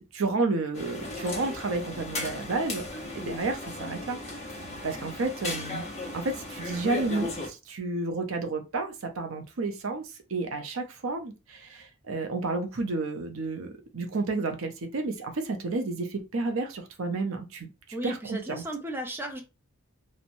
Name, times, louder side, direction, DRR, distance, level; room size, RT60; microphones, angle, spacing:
voice 1, 0.1-4.2 4.8-5.9 6.1-17.7 18.0-18.6, right 3 dB, 75° right, 0.6 m, -31 dB
sound 1, 0.7-7.5, left 2 dB, 35° left, 0.8 m, -36 dB
voice 2, 17.9-19.4, right 1 dB, 10° right, 0.5 m, -35 dB
2.9 x 2.1 x 2.6 m
head